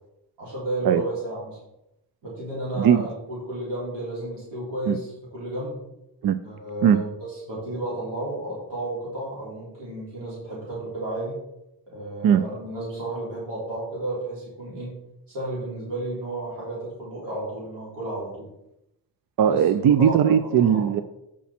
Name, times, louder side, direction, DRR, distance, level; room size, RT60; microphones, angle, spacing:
voice 1, 0.4-1.6 2.2-5.8 6.4-11.4 11.9-14.9 15.3-18.5 19.5-19.7 20.0-20.1 20.5-20.9, right 1 dB, 85° right, -6 dB, 3.5 m, -32 dB
voice 2, 19.4-21.0, right 8 dB, 60° right, 11 dB, 0.5 m, -18 dB
8.2 x 6.0 x 4.3 m, 0.85 s
cardioid pair, 100°, 42 cm